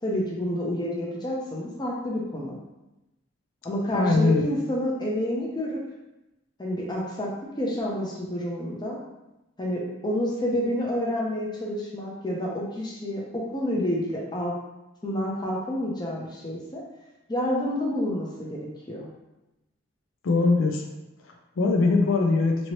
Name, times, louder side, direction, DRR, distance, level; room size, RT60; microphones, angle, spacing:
voice 1, 0.0-2.5 3.6-5.8 6.6-7.3 7.6-9.0 9.6-14.5 15.0-16.8 17.3-18.6 18.9-19.1, left 1 dB, 20° left, -3 dB, 0.5 m, -29 dB
voice 2, 3.9-4.5 20.2-20.8 21.2-22.7, left 3 dB, 75° left, 3 dB, 0.4 m, -22 dB
2.9 x 2.8 x 2.9 m, 0.97 s
head